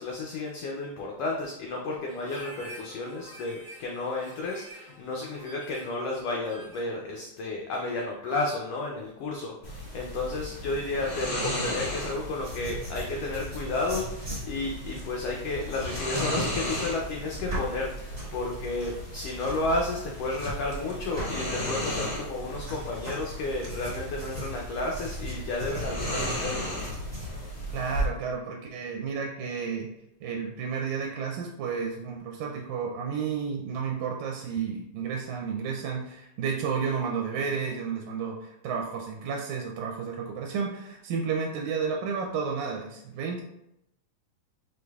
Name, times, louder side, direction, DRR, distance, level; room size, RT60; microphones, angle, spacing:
voice 1, 0.0-26.7, left 2 dB, 90° left, -1 dB, 1.3 m, -32 dB
Harmonica, 2.1-7.0, equal, 30° right, 1.2 m, -47 dB
sound 1, 9.6-28.0, equal, 55° left, 0.7 m, -35 dB
sound 2, 12.4-22.1 22.6-27.3, equal, 65° right, 0.4 m, -40 dB
voice 2, 27.7-29.9 30.2-43.4, right 6 dB, 80° right, 1 dB, 1.9 m, -32 dB
5.0 x 3.9 x 2.3 m, 0.83 s
omnidirectional pair, 3.4 m